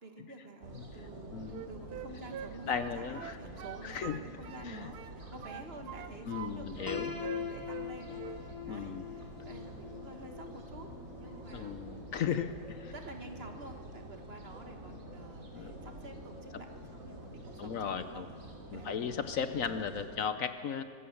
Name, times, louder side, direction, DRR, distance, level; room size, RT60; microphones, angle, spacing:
voice 1, 0.0-10.9 11.2-12.1 12.9-18.2 18.7-19.2, right 2 dB, 40° right, 5 dB, 1.6 m, -49 dB
sound 1, 0.6-20.1, right 1 dB, 55° right, 3.4 m, -48 dB
voice 2, 1.3-1.6 2.7-3.4 3.8-4.2 4.6-4.9 6.3-7.1 8.7-9.0 11.5-12.9 15.5-15.7 17.6-18.3 18.7-20.8, left 7 dB, 60° left, 10 dB, 1.1 m, -36 dB
Wind instrument woodwind instrument, 1.5-4.7 4.9-6.5 6.8-7.9 8.1-8.4, right 9 dB, 80° right, 1.3 m, -44 dB
Piano, 6.9-12.7, left 7 dB, 15° left, 1.2 m, -43 dB
25.0 x 15.5 x 7.1 m, 2.1 s
omnidirectional pair, 1.7 m